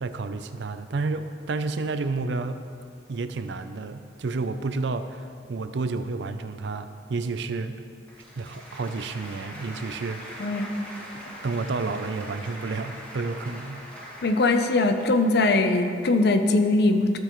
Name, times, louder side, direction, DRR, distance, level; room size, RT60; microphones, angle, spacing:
voice 1, 0.0-2.6 3.1-7.8 8.4-10.5 11.4-13.8, right 3 dB, 70° right, 10 dB, 0.4 m, -30 dB
Applause, 8.0-15.4, equal, 10° left, 1.8 m, -42 dB
voice 2, 14.2-17.2, left 2 dB, 60° left, 7 dB, 0.6 m, -21 dB
13.5 x 6.8 x 3.1 m, 2.4 s
head